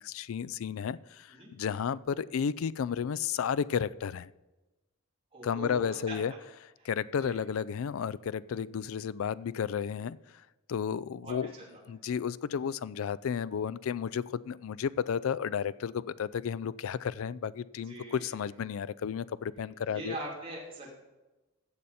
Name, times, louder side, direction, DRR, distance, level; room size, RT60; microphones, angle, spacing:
voice 1, 0.0-4.3 5.4-6.3 6.8-10.2 10.7-11.5 11.9-20.2, left 7 dB, 70° left, 0.4 m, -32 dB
voice 2, 5.3-6.4 6.8-6.9 7.2-7.4 11.2-11.8 17.9-18.4 19.9-20.9, right 2 dB, 25° right, 3.2 m, -42 dB
15.0 x 6.9 x 4.2 m
head